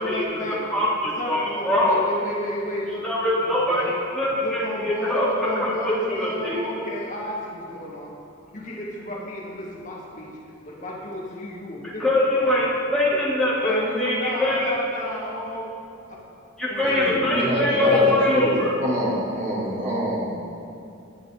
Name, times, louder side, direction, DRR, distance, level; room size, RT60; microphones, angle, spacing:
voice 1, 0.0-0.7 1.2-3.9 4.4-8.2 8.5-10.4 10.6-12.0 12.4-12.6 13.6-15.7 16.1-16.2 16.7-18.7 19.3-19.6, left 1 dB, 40° left, -4 dB, 2.0 m, -33 dB
voice 2, 0.7-2.0 3.0-5.3 5.6-6.6 12.0-14.6 16.6-18.7, left 1 dB, 5° left, -9 dB, 3.6 m, -23 dB
voice 3, 16.8-20.3, equal, 35° right, -6 dB, 3.3 m, -25 dB
19.5 x 9.6 x 4.0 m, 2.9 s
head